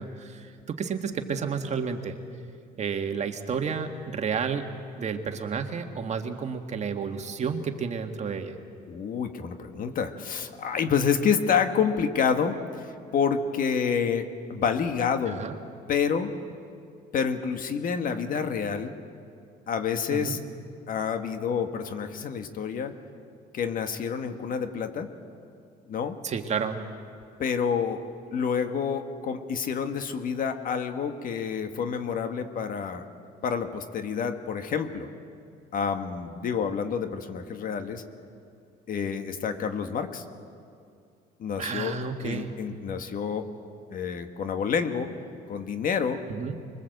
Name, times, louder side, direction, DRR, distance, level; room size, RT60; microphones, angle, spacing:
voice 1, 0.0-2.2 2.8-4.7 5.0-8.6 15.2-15.5 20.1-20.4 26.2-26.8 41.6-42.6 46.3-46.6, right 6 dB, 40° right, 5 dB, 1.8 m, -31 dB
voice 2, 8.9-15.4 15.9-16.3 17.1-18.9 19.7-20.4 20.9-22.9 23.5-25.1 25.9-26.2 27.4-28.0 28.3-33.1 33.4-35.1 35.7-38.0 38.9-40.2 41.4-41.9 42.2-43.5 43.9-45.1 45.5-46.2, left 6 dB, 55° left, 7 dB, 1.7 m, -28 dB
25.0 x 22.0 x 8.1 m, 2.4 s
cardioid pair, 110°, 17 cm